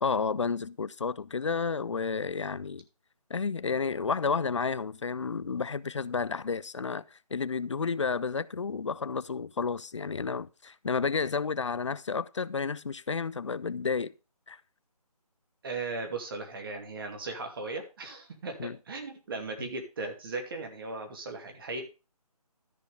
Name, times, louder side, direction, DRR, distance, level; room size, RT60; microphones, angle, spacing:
voice 1, 0.0-2.8 3.3-14.1 14.5-14.6 18.6-18.8, left 5 dB, 50° left, 0.5 m, -31 dB
voice 2, 15.6-21.8, right 3 dB, 35° right, 2.4 m, -37 dB
13.0 x 4.8 x 5.0 m
figure-of-eight pair, 155°, 20 cm